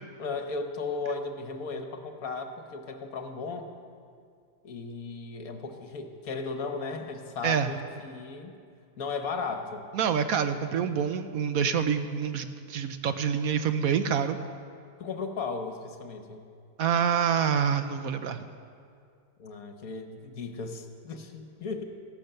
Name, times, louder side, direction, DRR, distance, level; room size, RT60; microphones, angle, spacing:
voice 1, 0.2-3.7 4.6-8.5 9.0-9.8 15.0-16.4 19.4-21.8, left 4 dB, 65° left, 5 dB, 1.5 m, -36 dB
voice 2, 9.9-14.4 16.8-18.5, right 7 dB, 70° right, 9 dB, 1.0 m, -27 dB
14.5 x 12.0 x 6.7 m, 2.3 s
omnidirectional pair, 1.7 m